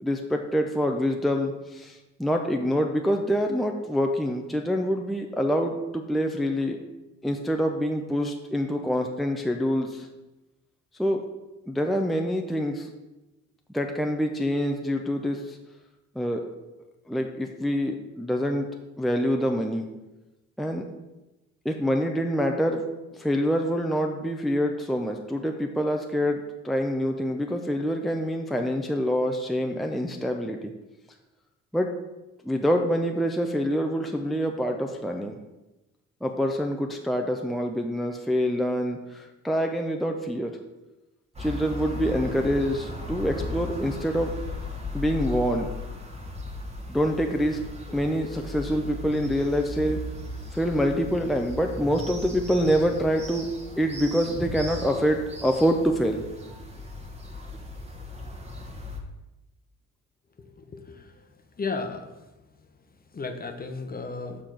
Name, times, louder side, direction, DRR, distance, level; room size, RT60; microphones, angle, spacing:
voice 1, 0.0-6.8 7.2-10.1 11.0-11.2 11.7-12.9 13.7-15.6 16.1-16.4 17.1-18.7 19.0-19.9 20.6-20.9 21.6-22.8 23.1-30.7 31.7-31.9 32.4-35.4 36.2-40.5 41.4-44.3 44.9-45.7 46.9-47.6 47.9-50.0 50.5-53.4 53.8-56.2, equal, ahead, 3 dB, 0.6 m, -26 dB
sound 1, 41.3-59.0, left 2 dB, 20° right, 1.3 m, -37 dB
voice 2, 60.6-61.0 61.6-62.1 63.1-64.4, left 4 dB, 30° left, 6 dB, 0.9 m, -33 dB
6.8 x 3.8 x 6.1 m, 1.0 s
cardioid pair, 90°, 30 cm